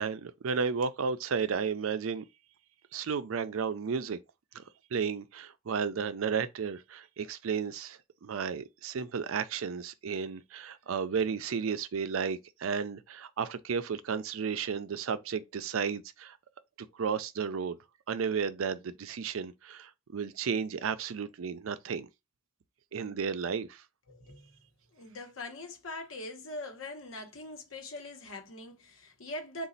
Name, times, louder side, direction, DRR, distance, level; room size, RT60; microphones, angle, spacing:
voice 1, 0.0-2.2 2.9-4.2 4.5-4.6 4.9-16.4 17.0-17.8 18.1-22.1 22.9-23.8, right 6 dB, 85° right, 0.5 m, -33 dB
voice 2, 24.1-24.5 24.9-29.7, left 2 dB, 75° left, 1.1 m, -42 dB
4.0 x 2.4 x 3.9 m
head